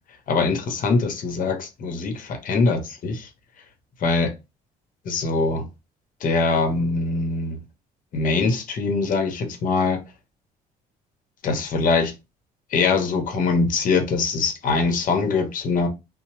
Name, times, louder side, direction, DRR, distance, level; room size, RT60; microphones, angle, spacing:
voice 1, 0.3-3.3 4.0-4.3 5.0-5.6 6.2-7.6 8.1-10.0 11.4-12.1 12.7-15.9, left 4 dB, 55° left, 0.8 m, -22 dB
2.8 x 2.0 x 3.0 m
cardioid pair, 110°, 17 cm